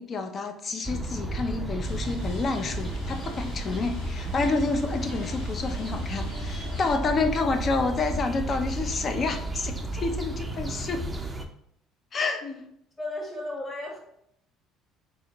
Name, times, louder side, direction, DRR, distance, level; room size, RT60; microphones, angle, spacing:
voice 1, 0.0-11.0 12.1-12.4, left 3 dB, 40° left, 7 dB, 0.5 m, -29 dB
sound 1, 0.8-11.5, right 1 dB, 10° right, 0.4 m, -33 dB
sound 2, 1.8-7.0, left 2 dB, 85° left, 1.4 m, -45 dB
voice 2, 13.0-14.0, left 2 dB, 25° left, -2 dB, 1.4 m, -34 dB
4.1 x 2.5 x 2.9 m, 0.73 s
supercardioid pair, 100°, 0 cm